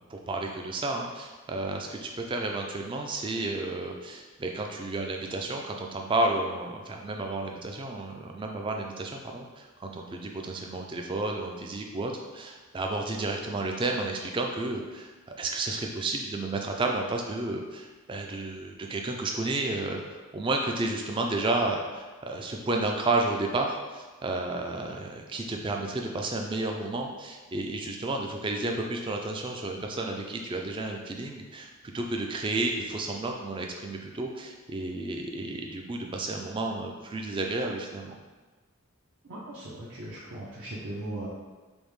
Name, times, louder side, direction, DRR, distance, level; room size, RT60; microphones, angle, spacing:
voice 1, 0.1-31.7 31.9-38.1, right 2 dB, 20° right, 2 dB, 0.3 m, -31 dB
voice 2, 39.2-41.3, right 1 dB, 65° right, -8 dB, 0.6 m, -38 dB
5.1 x 2.1 x 3.1 m, 1.3 s
head